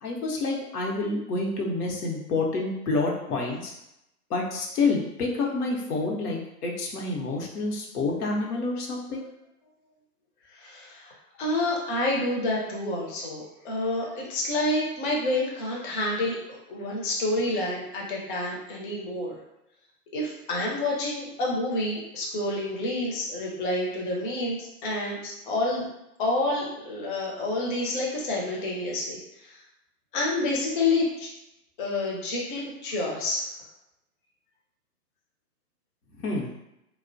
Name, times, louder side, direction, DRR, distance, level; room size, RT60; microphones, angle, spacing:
voice 1, 0.0-3.7 4.3-9.2 36.2-36.5, left 3 dB, 80° left, -1 dB, 0.8 m, -28 dB
voice 2, 10.5-19.4 20.1-25.8 26.2-29.6 30.1-31.3 31.8-33.5, left 2 dB, 35° left, -3 dB, 0.5 m, -28 dB
2.4 x 2.1 x 2.5 m, 0.85 s
hypercardioid pair, 135°, 46 cm